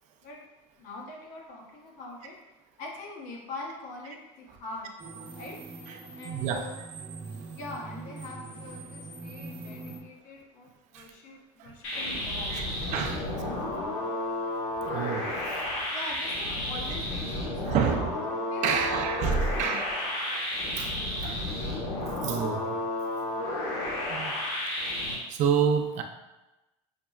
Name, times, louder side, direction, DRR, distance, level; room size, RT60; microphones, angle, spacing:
voice 1, 0.8-2.4 2.8-5.0 5.3-5.6 6.1-6.8 7.5-12.8 15.9-18.0 18.3-19.8, left 2 dB, 65° left, -2 dB, 1.0 m, -43 dB
sound 1, 5.0-10.0, right 3 dB, 35° right, 0.8 m, -42 dB
voice 2, 5.9-6.7 10.9-11.1 11.6-11.7 12.5-13.3 14.8-15.7 17.7-18.1 18.6-21.4 22.2-22.8 24.1-24.3 25.3-26.0, right 6 dB, 55° right, 4 dB, 0.4 m, -29 dB
sound 2, 11.8-25.1, left 1 dB, 90° left, 1.0 m, -32 dB
5.6 x 2.0 x 2.3 m, 1.0 s
supercardioid pair, 110°, 15 cm